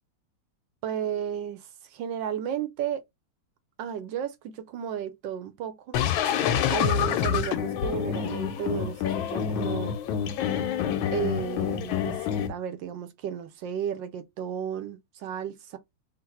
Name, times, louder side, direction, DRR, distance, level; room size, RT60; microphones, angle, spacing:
voice 1, 0.8-3.0 3.8-6.0 6.7-9.9 11.1-15.8, right 9 dB, 75° right, 1.2 m, -33 dB
sound 1, 5.9-12.5, left 8 dB, 85° left, 1.5 m, -27 dB
3.9 x 2.5 x 4.1 m
omnidirectional pair, 2.1 m